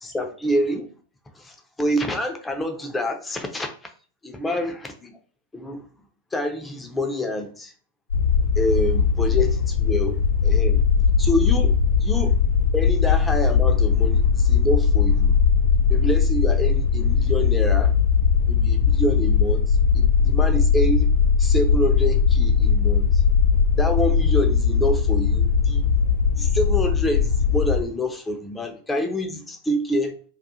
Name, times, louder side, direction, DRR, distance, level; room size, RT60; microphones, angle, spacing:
voice 1, 0.0-0.9 1.4-3.7 4.2-5.1 5.5-5.8 6.3-7.7 8.6-10.8 11.2-12.4 12.7-15.3 15.9-17.9 18.5-21.1 21.4-23.2 23.8-25.8 26.4-30.2, equal, 10° left, 0.5 m, -27 dB
sound 1, 8.1-27.8, left 6 dB, 75° left, 0.5 m, -19 dB
2.3 x 2.3 x 2.7 m
figure-of-eight pair, 90°, 0 cm